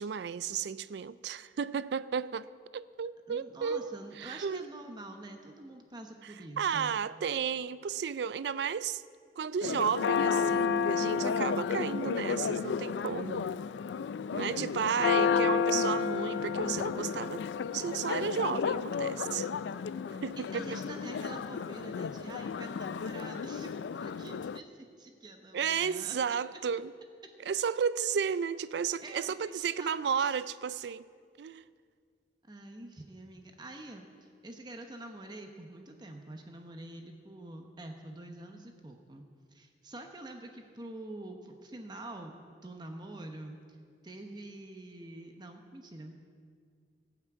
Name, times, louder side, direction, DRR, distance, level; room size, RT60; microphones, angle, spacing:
voice 1, 0.0-2.5 2.7-4.7 6.2-9.0 9.4-13.5 14.3-19.5 20.2-20.8 25.5-26.9 27.4-31.0 31.4-31.6, right 7 dB, 75° right, 0.4 m, -33 dB
voice 2, 3.3-6.9 14.5-15.1 20.4-26.1 29.0-30.3 32.4-39.2 39.5-42.3 42.6-43.6 44.0-46.1, right 2 dB, 25° right, 0.9 m, -46 dB
Church bell, 9.6-24.6, left 6 dB, 90° left, 0.3 m, -32 dB
17.0 x 6.0 x 8.0 m
head